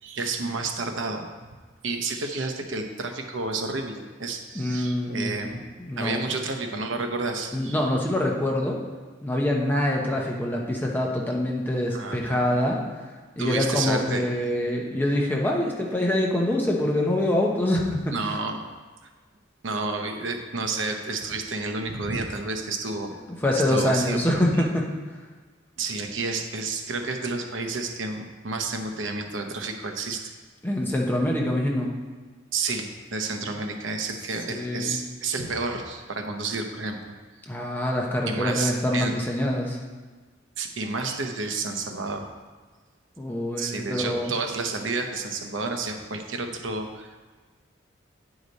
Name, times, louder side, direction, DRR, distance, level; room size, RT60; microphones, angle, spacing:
voice 1, 0.0-1.3 1.8-5.6 6.0-7.8 11.9-12.6 13.4-14.3 18.1-18.6 19.6-23.1 23.5-24.6 25.8-30.2 32.5-37.1 38.3-39.1 40.6-42.2 43.6-47.3, right 3 dB, 80° right, 4 dB, 0.8 m, -30 dB
voice 2, 4.5-6.2 7.5-8.8 9.2-12.8 13.4-18.1 23.4-24.9 30.6-31.9 34.5-35.0 37.5-39.8 43.2-44.3, left 1 dB, 10° left, -1 dB, 0.8 m, -25 dB
9.3 x 5.0 x 4.1 m, 1.4 s
head